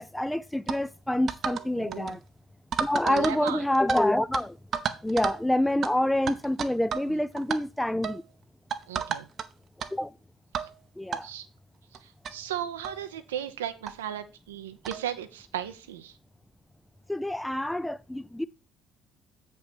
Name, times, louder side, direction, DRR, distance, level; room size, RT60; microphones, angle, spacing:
voice 1, 0.0-2.2 2.8-4.6 5.0-8.2 9.9-10.1 11.0-11.3 17.1-18.5, left 1 dB, 5° left, 0.5 m, -27 dB
sound 1, 0.7-0.8 1.3-1.7 1.9-2.1 2.7-4.0 4.3-4.4 4.7-5.4 5.8-5.9 6.3-7.1 7.4-7.6 8.0-8.2 8.7-9.5 9.8-9.9 10.5-10.7 11.1-11.2 11.9-12.0 12.2-12.3 12.8-13.0 13.9-14.0 14.8-15.0, right 7 dB, 50° right, 0.8 m, -32 dB
voice 2, 1.8-2.2 3.0-3.6 8.9-9.3 10.6-10.7 11.2-11.5 12.0-16.2, right 10 dB, 80° right, 0.8 m, -36 dB
7.9 x 5.4 x 4.4 m
figure-of-eight pair, 55°, 0 cm